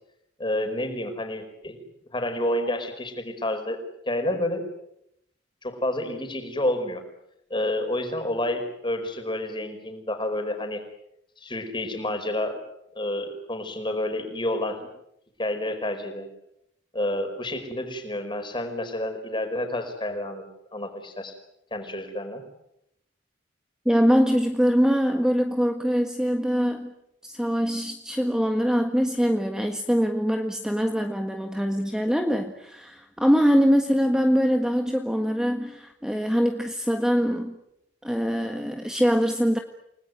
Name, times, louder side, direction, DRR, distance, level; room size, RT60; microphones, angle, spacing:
voice 1, 0.4-1.8 2.1-3.8 4.1-4.6 5.6-7.0 7.5-10.8 11.4-12.6 12.9-14.9 15.4-16.3 16.9-21.3 21.7-22.4, left 1 dB, 25° left, 6 dB, 5.0 m, -29 dB
voice 2, 23.8-26.9 27.2-37.6 38.0-39.6, equal, 5° right, 4 dB, 1.6 m, -23 dB
29.5 x 19.5 x 9.5 m, 0.81 s
head